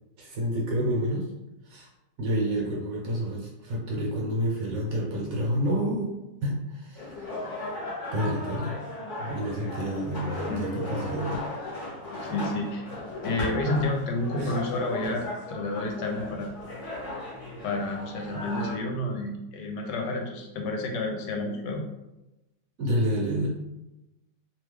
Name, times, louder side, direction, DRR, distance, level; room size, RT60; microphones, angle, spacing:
voice 1, 0.2-1.3 1.7-1.9 2.2-6.1 6.4-7.3 8.1-8.7 9.2-11.4 14.4-14.5 22.8-23.5, equal, 60° right, -2 dB, 1.1 m, -29 dB
sound 1, 7.0-18.8, left 1 dB, 50° left, 1.3 m, -36 dB
voice 2, 12.1-12.9 13.2-16.5 17.6-21.8, left 2 dB, 75° left, 2 dB, 1.2 m, -30 dB
3.0 x 2.2 x 3.3 m, 0.96 s
omnidirectional pair, 1.9 m